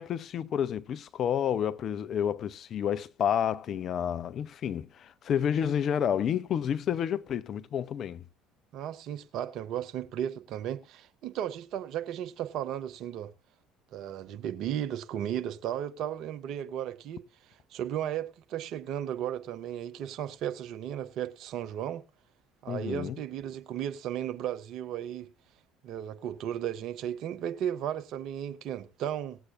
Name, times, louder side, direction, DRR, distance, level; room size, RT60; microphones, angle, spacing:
voice 1, 0.0-8.2 22.7-23.2, left 9 dB, 50° left, 0.6 m, -30 dB
voice 2, 8.7-13.3 13.9-17.2 17.7-22.0 22.6-25.3 25.8-29.4, right 10 dB, 55° right, 0.9 m, -35 dB
19.0 x 8.1 x 2.5 m
figure-of-eight pair, 60°, 0 cm